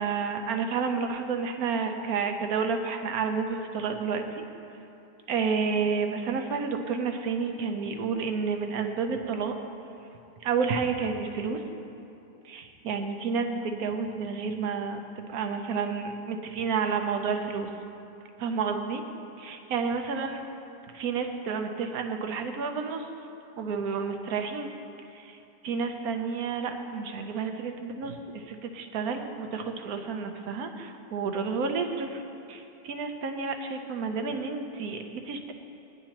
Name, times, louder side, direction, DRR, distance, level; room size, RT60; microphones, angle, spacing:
voice 1, 0.0-4.4 5.3-9.5 10.4-11.6 12.4-17.7 18.4-19.0 19.4-20.4 20.9-23.0 23.6-24.7 25.1-25.4 25.6-32.2 32.5-35.5, right 5 dB, 60° right, 5 dB, 1.1 m, -30 dB
17.5 x 10.0 x 3.0 m, 2.7 s
omnidirectional pair, 1.9 m